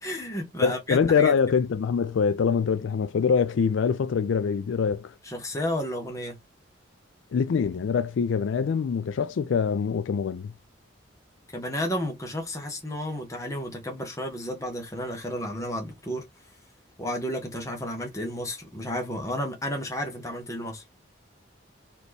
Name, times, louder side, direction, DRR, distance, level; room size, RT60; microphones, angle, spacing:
voice 1, 0.0-1.3 5.2-6.4 11.5-16.2 17.0-20.8, left 1 dB, 15° left, 1.1 m, -32 dB
voice 2, 0.6-5.1 7.3-10.5, left 6 dB, 65° left, 0.3 m, -24 dB
4.1 x 2.9 x 3.3 m
head